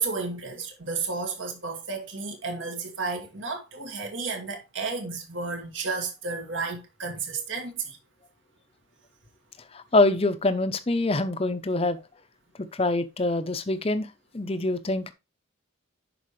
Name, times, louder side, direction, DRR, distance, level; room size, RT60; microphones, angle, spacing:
voice 1, 0.0-8.0, right 4 dB, 70° right, 1.9 m, -32 dB
voice 2, 9.7-12.0 12.7-14.1 14.3-15.1, left 2 dB, 30° left, 0.7 m, -25 dB
11.0 x 4.6 x 3.2 m
head